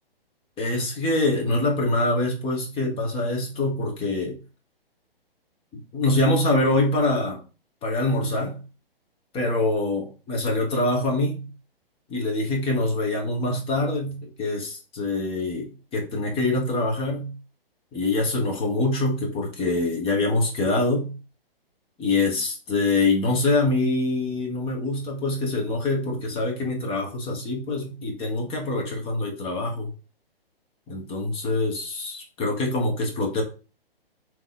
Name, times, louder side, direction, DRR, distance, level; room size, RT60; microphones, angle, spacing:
voice 1, 0.6-4.4 5.9-7.4 7.8-8.6 9.3-11.5 12.1-17.3 17.9-21.1 22.0-29.9 30.9-33.4, left 2 dB, 20° left, 0 dB, 1.2 m, -24 dB
3.8 x 3.0 x 3.6 m, 0.33 s
hypercardioid pair, 130°, 30 cm